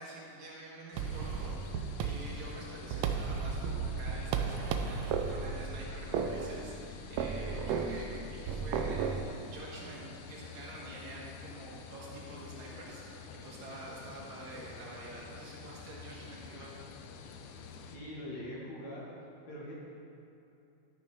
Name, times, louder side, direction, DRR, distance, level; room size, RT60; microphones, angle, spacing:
voice 1, 0.0-16.8, right 2 dB, 65° right, -4 dB, 2.7 m, -47 dB
sound 1, 0.9-18.0, left 5 dB, 85° left, 2.1 m, -49 dB
sound 2, 1.0-9.2, right 6 dB, 85° right, 1.5 m, -34 dB
voice 2, 17.8-19.0 19.5-19.8, left 1 dB, 55° left, -6 dB, 2.8 m, -43 dB
12.0 x 6.3 x 4.8 m, 2.9 s
omnidirectional pair, 3.7 m